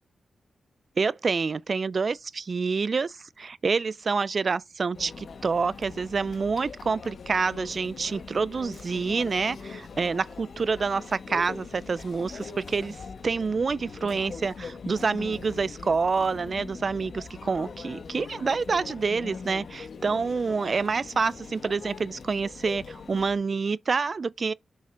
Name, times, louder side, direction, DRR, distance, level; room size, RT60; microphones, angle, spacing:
voice 1, 1.0-24.5, right 4 dB, 45° right, 0.3 m, -27 dB
Conversation / Chatter / Crowd, 4.9-23.4, left 5 dB, 65° left, 1.0 m, -42 dB
6.3 x 5.5 x 3.7 m
wide cardioid pair, 120°, 0 cm